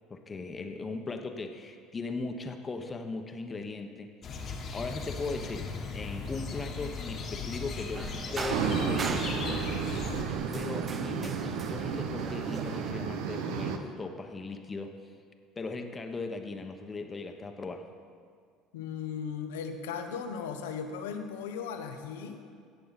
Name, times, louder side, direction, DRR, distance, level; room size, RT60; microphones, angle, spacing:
voice 1, 0.1-5.7 5.9-9.6 10.5-14.9 15.6-17.9, left 3 dB, 30° left, 5 dB, 1.1 m, -38 dB
sound 1, 4.2-10.2, left 4 dB, 45° left, 1.4 m, -37 dB
sound 2, 7.9-12.9, right 5 dB, 35° right, 0.6 m, -40 dB
sound 3, 8.5-13.8, right 6 dB, 75° right, 0.8 m, -32 dB
voice 2, 18.7-22.4, left 6 dB, 85° left, 6 dB, 0.9 m, -37 dB
17.5 x 6.7 x 4.2 m, 2.1 s
hypercardioid pair, 75°, 0 cm